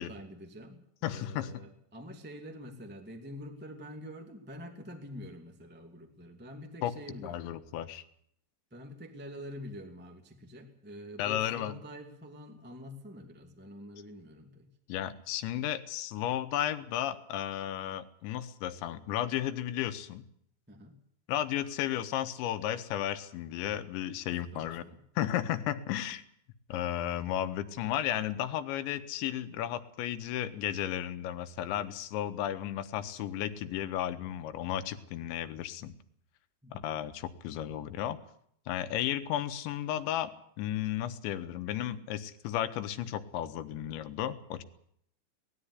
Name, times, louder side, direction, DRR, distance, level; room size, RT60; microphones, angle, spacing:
voice 1, 0.0-7.5 8.7-14.7 20.7-21.0 24.5-25.0 36.6-36.9, equal, 5° right, 4 dB, 0.8 m, -46 dB
voice 2, 1.0-1.6 6.8-6.9 7.2-8.0 11.2-11.8 14.9-20.2 21.3-24.8 25.2-26.2 26.7-35.9 36.7-38.2 38.7-44.6, left 11 dB, 80° left, 9 dB, 3.3 m, -34 dB
19.5 x 13.5 x 9.9 m, 0.69 s
omnidirectional pair, 5.2 m